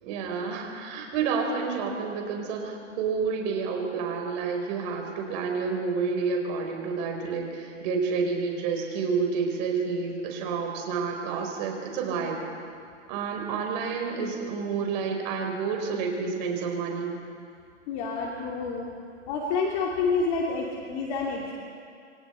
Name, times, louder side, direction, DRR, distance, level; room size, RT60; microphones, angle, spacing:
voice 1, 0.0-12.4 13.1-17.2, right 5 dB, 35° right, 2 dB, 4.4 m, -29 dB
voice 2, 17.9-18.9 19.3-21.6, left 4 dB, 35° left, -2 dB, 2.7 m, -28 dB
27.5 x 24.5 x 4.4 m, 2.3 s
hypercardioid pair, 150°, 37 cm